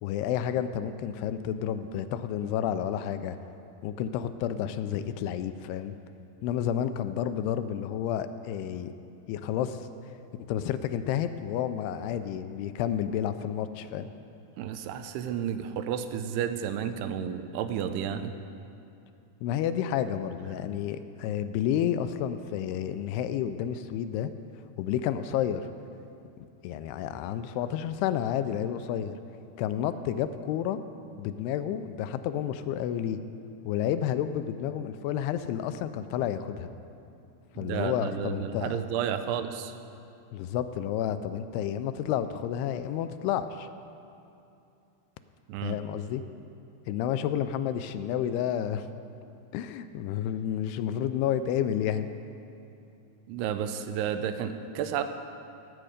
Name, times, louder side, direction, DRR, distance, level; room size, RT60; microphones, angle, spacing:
voice 1, 0.0-3.5 3.8-6.0 6.4-8.9 9.3-10.1 10.5-14.1 19.4-24.3 24.8-25.7 26.4-29.2 29.6-30.8 31.2-33.2 33.7-36.7 37.6-38.8 40.3-43.7 45.6-46.2 46.9-48.9 49.5-52.1, left 10 dB, 85° left, 11 dB, 2.5 m, -30 dB
voice 2, 14.6-18.3 37.6-39.7 45.5-45.8 53.3-55.0, right 8 dB, 85° right, 9 dB, 2.7 m, -31 dB
18.5 x 7.8 x 5.0 m, 2.7 s
omnidirectional pair, 4.7 m